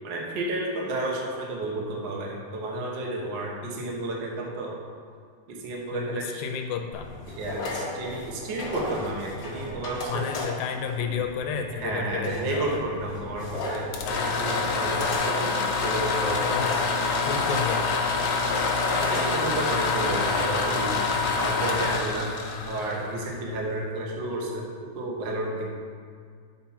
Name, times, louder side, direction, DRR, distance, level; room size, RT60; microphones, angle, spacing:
voice 1, 0.0-4.8 5.5-6.4 7.4-10.2 11.7-16.5 18.9-21.0 21.4-22.3 22.6-25.7, right 2 dB, 75° right, -2 dB, 1.0 m, -31 dB
voice 2, 5.9-7.1 10.1-12.8 16.4-16.8 17.3-18.2, left 6 dB, 85° left, 4 dB, 2.4 m, -32 dB
sound 1, 6.9-21.9, left 2 dB, 55° left, 1.7 m, -36 dB
sound 2, 13.8-23.6, left 4 dB, 70° left, 1.9 m, -26 dB
8.8 x 4.3 x 5.6 m, 2.1 s
omnidirectional pair, 4.0 m